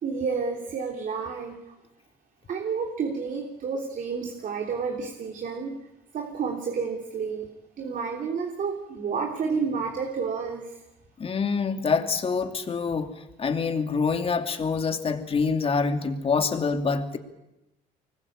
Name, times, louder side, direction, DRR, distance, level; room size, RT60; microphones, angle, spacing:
voice 1, 0.0-1.6 2.5-5.8 6.1-10.8, right 5 dB, 50° right, 3 dB, 3.3 m, -30 dB
voice 2, 11.2-13.1 13.4-17.2, left 5 dB, 35° left, 6 dB, 2.7 m, -26 dB
24.5 x 21.0 x 8.8 m, 0.92 s
cardioid pair, 110°, 17 cm